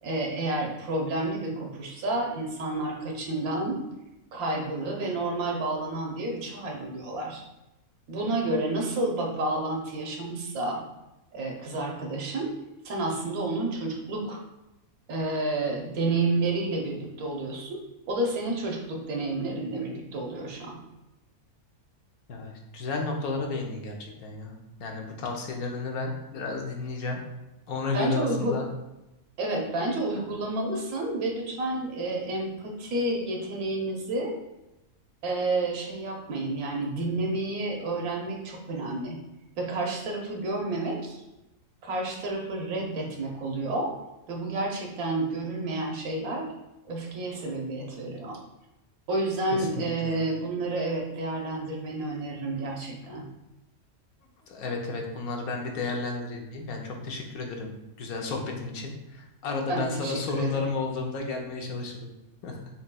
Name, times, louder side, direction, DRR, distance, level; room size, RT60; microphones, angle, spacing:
voice 1, 0.0-3.8 4.3-7.4 8.1-10.8 11.3-12.6 12.8-14.4 15.1-17.8 18.1-20.8 27.9-28.6 29.4-34.4 35.2-39.2 39.6-41.2 41.8-43.9 44.3-46.5 46.9-48.4 49.1-53.3 59.7-60.7, right 2 dB, 85° right, 0 dB, 1.3 m, -30 dB
voice 2, 22.3-27.2 27.7-28.6 49.5-50.2 54.5-57.7 58.0-62.1 62.4-62.6, left 3 dB, 90° left, 1 dB, 1.2 m, -32 dB
6.3 x 3.0 x 2.2 m, 0.95 s
omnidirectional pair, 1.5 m